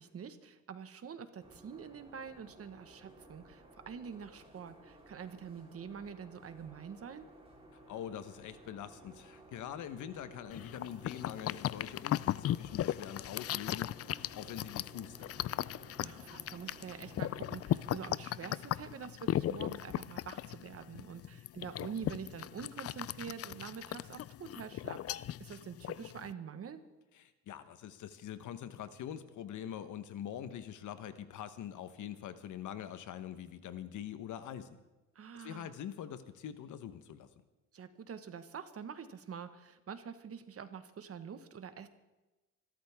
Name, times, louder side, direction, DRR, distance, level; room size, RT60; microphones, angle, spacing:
voice 1, 0.0-7.3 16.0-26.8 35.1-35.7 37.7-41.9, right 7 dB, 50° right, 10 dB, 1.5 m, -46 dB
sound 1, 1.4-18.2, right 2 dB, 20° right, 3.8 m, -56 dB
voice 2, 7.9-15.4 27.5-34.8 35.4-37.3, left 10 dB, 75° left, 11 dB, 1.2 m, -44 dB
sound 2, 10.5-26.3, left 12 dB, 55° left, 0.4 m, -37 dB
25.5 x 13.0 x 3.6 m, 1.1 s
cardioid pair, 90°, 30 cm